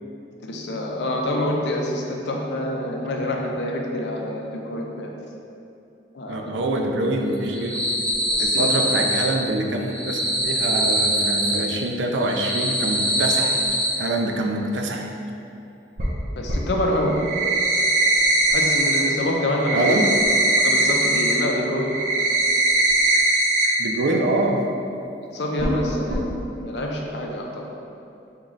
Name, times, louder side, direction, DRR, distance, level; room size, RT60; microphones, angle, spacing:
voice 1, 0.4-5.1 6.1-6.5 8.3-8.7 16.4-17.2 18.0-18.1 18.5-19.9 20.6-22.0 25.3-26.2 26.6-27.7, left 1 dB, 65° left, 0 dB, 0.5 m, -26 dB
voice 2, 6.3-7.9 8.4-13.7 14.0-15.1 19.7-20.1 23.8-24.6, right 2 dB, 85° right, 2 dB, 0.4 m, -25 dB
sound 1, 7.4-9.3 9.8-11.6 12.1-13.9 16.0-16.1 16.5-16.6 17.0-19.0 19.3-21.3 21.7-23.7 24.0-24.1 24.5-24.6 25.6-25.8 26.1-26.2, right 1 dB, 45° right, 0.6 m, -21 dB
3.6 x 3.1 x 3.8 m, 2.7 s
head